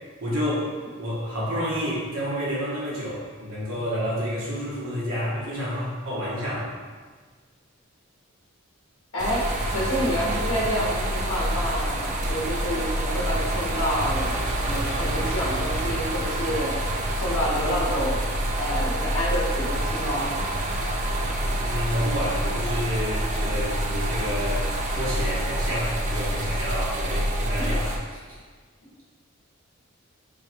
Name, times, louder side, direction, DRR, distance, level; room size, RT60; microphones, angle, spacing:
voice 1, 0.2-0.7 1.0-6.7 21.6-28.4, equal, 70° right, -8 dB, 1.1 m, -29 dB
voice 2, 9.1-18.2 18.6-20.3 27.6-27.7, equal, 70° left, -5 dB, 1.0 m, -29 dB
sound 1, 9.2-28.0, right 1 dB, 35° right, 0.3 m, -27 dB
4.6 x 2.3 x 2.8 m, 1.5 s
head